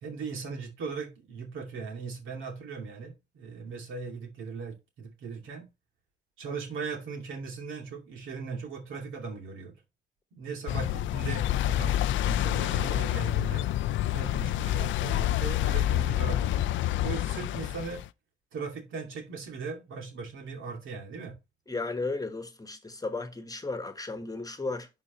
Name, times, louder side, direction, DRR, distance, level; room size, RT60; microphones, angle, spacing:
voice 1, 0.0-5.7 6.4-9.7 10.3-13.7 14.1-16.7 17.0-18.0 18.5-21.4, right 5 dB, 80° right, 2.6 m, -38 dB
sound 1, 10.7-18.1, left 13 dB, 70° left, 0.4 m, -28 dB
voice 2, 21.7-24.9, left 3 dB, 20° left, 1.3 m, -34 dB
11.5 x 3.9 x 3.1 m
cardioid pair, 90°, 20 cm